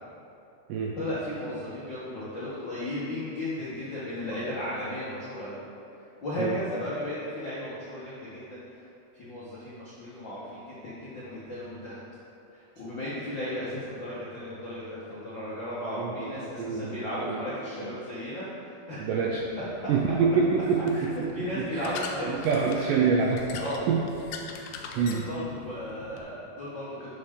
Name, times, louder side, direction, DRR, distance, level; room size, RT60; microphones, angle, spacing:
voice 1, 1.0-5.6 6.2-8.6 9.1-12.0 12.5-19.4 20.9-21.0 21.3-23.1 23.6-23.8 25.0-27.1, left 1 dB, 65° left, -10 dB, 1.1 m, -35 dB
voice 2, 16.0-16.3 16.6-17.5 17.8-17.9 19.0-19.4 19.9-21.3 21.7-21.9 22.3-23.4 23.9-24.0 24.3-24.4 25.0-25.2, right 5 dB, 80° right, -1 dB, 1.9 m, -26 dB
sound 1, 19.3-26.2, left 5 dB, 80° left, 2.4 m, -42 dB
11.0 x 6.4 x 3.7 m, 2.8 s
omnidirectional pair, 4.4 m